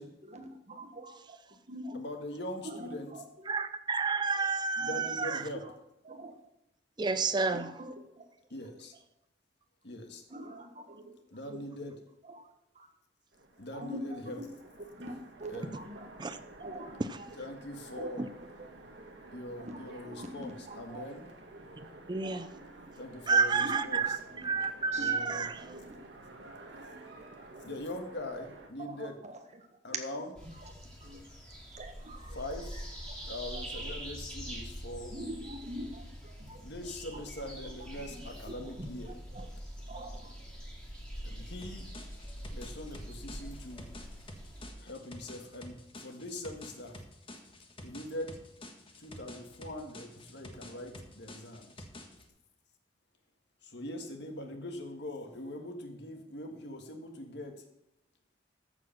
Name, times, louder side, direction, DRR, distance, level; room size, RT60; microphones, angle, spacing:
voice 1, 0.2-2.0 2.6-3.6 4.3-4.4 4.8-5.0 5.5-5.7 6.0-6.4 7.5-8.3 10.3-11.2 11.5-11.6 12.2-12.5 12.7-12.9 13.7-14.5 14.8-16.1 16.6-17.3 17.9-18.7 19.5-21.1 22.2-22.5 23.5-24.1 24.3-24.5 24.9-25.1 25.4-26.0 27.5-27.7 28.8-29.8 30.4-30.7 31.0-31.2 31.7-32.4 32.7-32.8 33.1-33.9 35.1-36.6 37.1-37.2 37.6-38.3 38.6-39.5 39.9-40.4, equal, 40° right, 1.5 m, -45 dB
voice 2, 1.9-3.1 4.8-5.6 8.5-8.9 9.8-10.2 11.3-11.9 13.6-14.4 15.5-15.8 17.3-18.2 19.3-21.2 22.9-24.0 25.0-25.5 27.6-29.1 29.8-30.3 32.3-32.8 33.3-35.1 36.6-39.1 41.2-41.9 42.5-43.9 44.8-47.0 47.8-48.4 49.0-51.9 53.6-57.6, left 1 dB, 70° left, 1.6 m, -42 dB
voice 3, 3.5-5.5 7.0-7.7 16.2-16.4 18.2-18.3 22.1-22.5 23.3-24.2 24.4-25.6, right 4 dB, 25° right, 0.5 m, -30 dB
Train, 13.3-28.7, right 2 dB, 75° right, 1.6 m, -51 dB
sound 1, 30.4-44.7, equal, 5° left, 2.5 m, -44 dB
sound 2, 41.6-52.3, left 1 dB, 30° left, 1.5 m, -49 dB
14.0 x 4.9 x 5.9 m
head